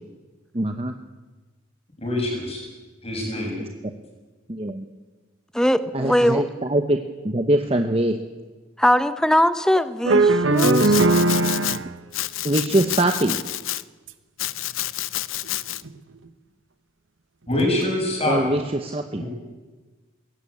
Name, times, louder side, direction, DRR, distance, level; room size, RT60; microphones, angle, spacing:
voice 1, 0.5-0.9 4.5-4.8 5.9-7.0 7.2-8.2 12.4-13.4 18.3-19.2, right 1 dB, 30° right, 6 dB, 1.0 m, -22 dB
voice 2, 2.0-2.6 3.0-3.6 17.5-18.6 19.2-19.3, left 1 dB, 30° left, 0 dB, 7.6 m, -25 dB
voice 3, 5.5-6.4 8.8-11.0, equal, 5° left, 12 dB, 0.8 m, -20 dB
sound 1, 10.0-12.0 14.1-14.2 15.5-15.6 15.8-15.9 17.6-17.9, right 2 dB, 65° right, 1.1 m, -19 dB
Domestic sounds home sounds, 10.6-11.8 12.1-13.8 14.4-15.8, left 14 dB, 75° left, 0.6 m, -29 dB
21.0 x 17.5 x 8.7 m, 1.3 s
head